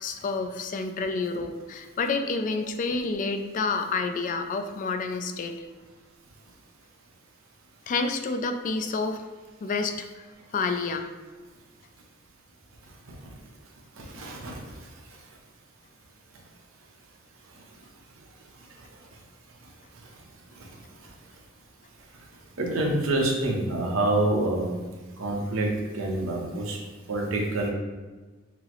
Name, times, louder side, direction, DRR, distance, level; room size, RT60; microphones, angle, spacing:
voice 1, 0.0-5.6 7.9-9.2 9.6-10.2 10.5-11.1, left 4 dB, 40° left, 6 dB, 0.3 m, -29 dB
voice 2, 14.0-14.8 20.6-20.7 22.6-24.7 25.2-26.8 27.1-27.7, right 2 dB, 85° right, 0 dB, 0.7 m, -27 dB
6.0 x 2.0 x 2.9 m, 1.3 s
head